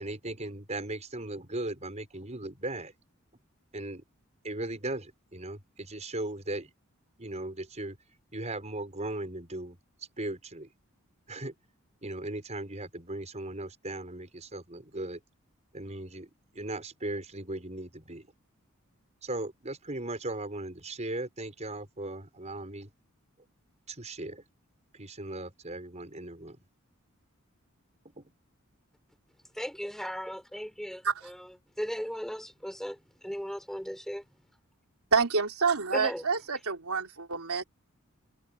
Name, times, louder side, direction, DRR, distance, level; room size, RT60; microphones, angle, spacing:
voice 1, 0.0-2.9 3.7-4.0 4.4-6.7 7.2-8.0 8.3-9.8 10.2-10.7 11.3-11.5 12.0-15.2 15.7-18.3 19.2-22.9 23.9-24.4 24.9-26.6 28.2-28.3, right 2 dB, 35° right, 5.7 m, -37 dB
voice 2, 29.5-34.2 35.9-36.2, equal, ahead, 5.9 m, -37 dB
voice 3, 35.1-37.6, right 5 dB, 90° right, 3.4 m, -27 dB
head